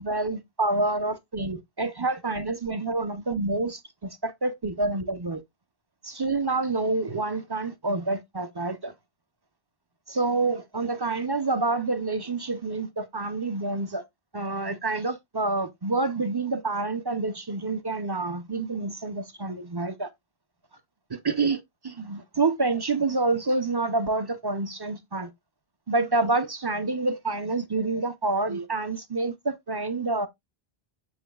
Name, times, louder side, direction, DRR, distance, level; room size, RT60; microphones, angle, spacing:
voice 1, 0.0-5.4 6.0-8.9 10.1-14.0 14.3-20.1 21.1-25.3 25.9-30.3, right 3 dB, 30° right, 0.5 m, -28 dB
7.1 x 6.8 x 2.3 m
omnidirectional pair, 1.0 m